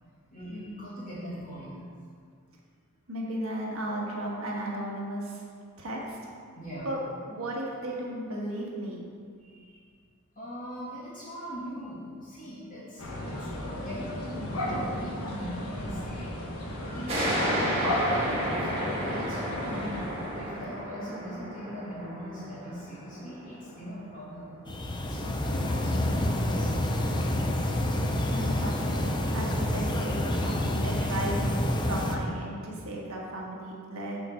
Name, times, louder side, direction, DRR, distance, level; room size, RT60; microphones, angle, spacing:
voice 1, 0.3-1.8 5.7-5.8 6.6-6.9 9.4-9.8 10.3-17.8 18.5-24.6 25.1-26.8 34.0-34.1, equal, 40° left, -14 dB, 2.2 m, -40 dB
voice 2, 3.1-5.5 5.8-6.2 6.8-9.0 28.3-31.5 31.8-34.2, right 1 dB, 70° right, -3 dB, 1.5 m, -35 dB
sound 1, 13.0-20.8, left 1 dB, 80° left, 1.2 m, -35 dB
sound 2, 17.1-24.3, equal, 30° right, 1.5 m, -32 dB
sound 3, 24.7-32.2, left 1 dB, 20° left, 0.5 m, -28 dB
7.0 x 4.2 x 6.5 m, 2.1 s
head